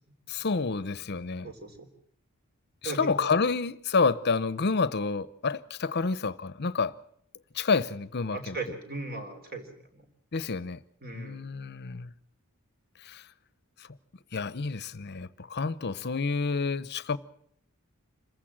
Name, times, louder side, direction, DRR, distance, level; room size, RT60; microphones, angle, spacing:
voice 1, 0.3-1.5 2.8-6.9 7.5-8.6 10.3-10.8 11.1-12.1 13.0-13.2 14.3-17.2, left 4 dB, 50° left, 0.8 m, -29 dB
voice 2, 1.4-1.9 2.8-3.3 8.3-9.7 9.9-10.1 11.0-11.4, right 3 dB, 45° right, 3.6 m, -37 dB
27.0 x 15.0 x 7.5 m
head